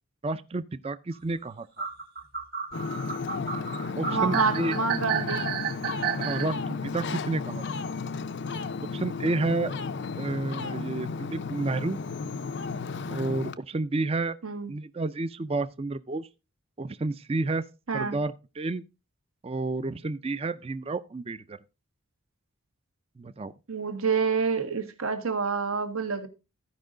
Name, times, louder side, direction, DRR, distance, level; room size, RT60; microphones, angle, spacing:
voice 1, 0.2-1.9 4.0-4.8 6.2-7.6 8.9-9.7 10.2-12.0 13.1-14.4 14.7-16.3 16.8-17.6 17.9-18.8 19.4-21.6 23.2-23.5, right 2 dB, 25° right, 0.4 m, -30 dB
sound 1, 1.8-6.5, right 8 dB, 45° right, 1.6 m, -32 dB
Ocean, 2.7-13.5, left 4 dB, 55° left, 0.5 m, -33 dB
voice 2, 4.0-5.5 5.8-5.9 14.4-14.7 17.9-18.2 23.7-26.3, right 5 dB, 80° right, 1.5 m, -28 dB
14.5 x 5.4 x 3.8 m
head